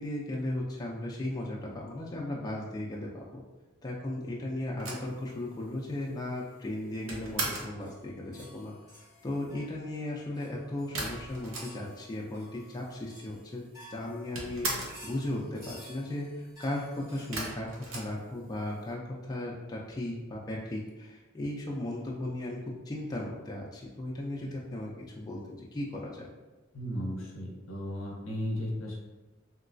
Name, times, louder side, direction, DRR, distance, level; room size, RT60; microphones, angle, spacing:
voice 1, 0.0-3.4 3.8-22.6 22.9-26.3, left 1 dB, 20° left, -3 dB, 0.3 m, -36 dB
sound 1, 4.8-7.8 10.9-12.1 12.4-12.5 12.7-13.5 13.7-15.1 17.3-18.8, right 2 dB, 75° right, 0.7 m, -38 dB
sound 2, 7.8-17.4, left 1 dB, 20° right, 1.3 m, -54 dB
voice 2, 26.7-29.0, equal, 75° left, -1 dB, 0.7 m, -35 dB
3.0 x 2.9 x 2.6 m, 1.2 s
head